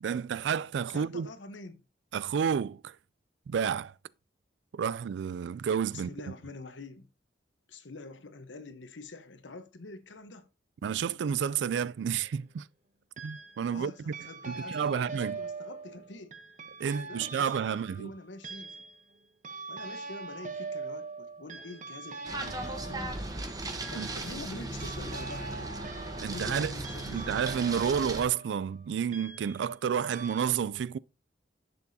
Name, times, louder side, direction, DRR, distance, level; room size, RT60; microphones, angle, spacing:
voice 1, 0.0-1.3 2.1-2.9 3.5-3.9 4.7-6.1 10.8-12.6 13.2-14.1 14.5-15.4 16.8-18.1 24.0-24.1 26.2-26.7 27.1-31.0, right 7 dB, 70° right, 0.3 m, -30 dB
voice 2, 0.9-1.8 5.9-7.1 7.7-10.5 13.7-16.3 16.9-18.9 19.7-23.6 23.9-25.7 26.1-27.5, left 2 dB, 90° left, 1.0 m, -46 dB
sound 1, 11.8-12.4 13.2-13.8 14.1-29.8 30.1-30.5, right 4 dB, 45° right, 0.9 m, -43 dB
sound 2, 22.2-28.2, right 2 dB, 20° right, 1.0 m, -37 dB
10.5 x 6.9 x 2.8 m
head